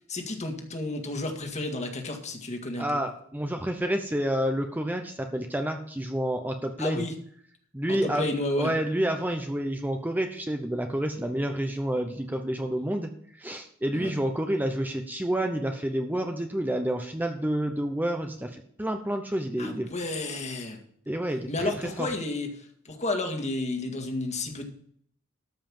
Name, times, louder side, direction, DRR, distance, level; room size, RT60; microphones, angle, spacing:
voice 1, 0.1-3.0 6.8-7.2 7.9-8.7 13.9-14.1 19.6-20.8 21.5-24.6, left 2 dB, 35° left, 4 dB, 1.9 m, -31 dB
voice 2, 2.8-7.0 7.7-8.3 8.6-13.1 13.4-19.9 21.1-21.7 22.0-22.1, right 1 dB, 10° right, 4 dB, 0.8 m, -29 dB
13.0 x 5.6 x 7.1 m, 0.64 s
head